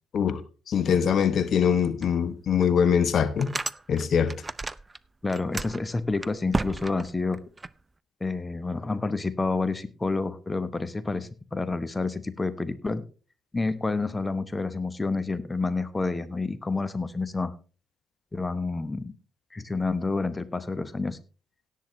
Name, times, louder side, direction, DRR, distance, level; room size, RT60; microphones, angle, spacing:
voice 1, 0.7-3.5 3.9-4.3, left 7 dB, 55° left, 1.0 m, -23 dB
sound 1, 2.0-2.1 2.6-2.7 3.2-5.0 5.2-7.7, right 3 dB, 25° right, 0.5 m, -33 dB
voice 2, 5.2-7.4 8.2-13.0 13.5-17.5 18.3-19.1 19.5-21.2, left 3 dB, 25° left, 0.9 m, -29 dB
17.5 x 7.5 x 3.1 m
hypercardioid pair, 45°, 0 cm